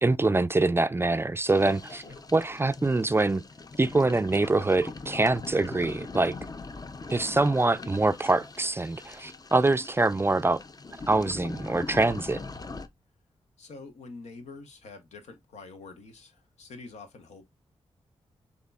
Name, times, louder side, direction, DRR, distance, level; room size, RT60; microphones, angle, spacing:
voice 1, 0.0-2.0 2.3-3.4 3.8-6.3 7.1-10.6 11.1-12.4, right 2 dB, 20° right, 0.4 m, -24 dB
sound 1, 1.5-12.9, left 3 dB, 35° left, 0.6 m, -42 dB
voice 2, 13.6-17.5, left 3 dB, 85° left, 1.0 m, -46 dB
6.4 x 2.9 x 2.3 m
cardioid pair, 50°, 11 cm